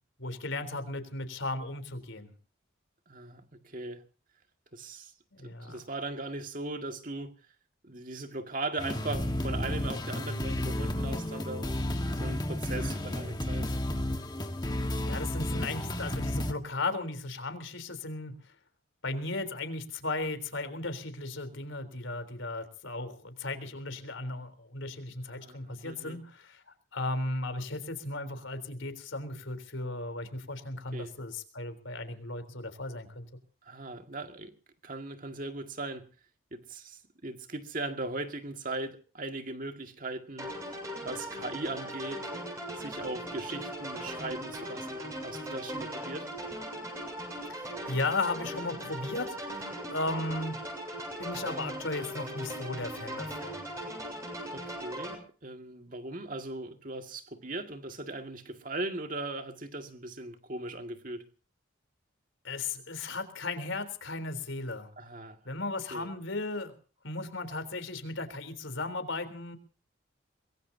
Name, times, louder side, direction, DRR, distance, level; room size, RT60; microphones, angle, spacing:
voice 1, 0.2-2.3 5.3-5.8 15.1-18.5 19.0-26.6 26.9-33.3 47.5-50.6 51.2-53.6 62.4-64.9 65.4-66.7 67.0-69.6, left 2 dB, 70° left, 3.7 m, -36 dB
voice 2, 3.1-4.0 4.7-5.1 5.4-7.3 7.8-11.8 12.2-13.8 25.3-26.2 30.9-31.2 33.6-34.5 34.8-36.1 36.5-40.8 41.0-42.2 42.8-46.3 54.5-61.2 65.0-65.4 65.9-66.1, right 2 dB, 40° right, 2.0 m, -39 dB
sound 1, 8.8-16.5, left 1 dB, 20° left, 1.5 m, -32 dB
sound 2, 40.4-55.1, equal, 15° right, 7.2 m, -39 dB
23.5 x 22.0 x 2.8 m
head